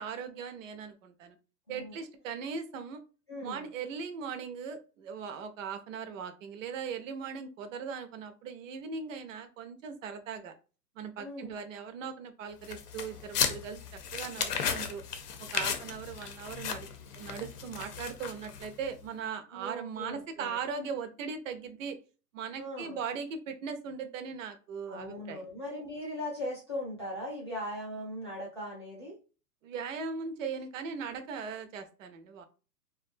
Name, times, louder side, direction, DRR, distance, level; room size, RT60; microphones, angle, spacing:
voice 1, 0.0-1.4 1.7-3.0 3.4-10.5 11.0-13.8 14.1-15.0 15.4-16.9 17.1-22.0 22.3-25.4 29.6-32.5, right 6 dB, 50° right, 8 dB, 0.6 m, -39 dB
voice 2, 3.3-3.7 11.2-11.6 19.5-20.6 22.6-23.0 24.9-29.2, equal, 20° left, -7 dB, 0.3 m, -39 dB
sound 1, 12.6-18.9, left 7 dB, 70° left, 0.7 m, -35 dB
2.5 x 2.2 x 2.4 m, 0.34 s
hypercardioid pair, 135°, 49 cm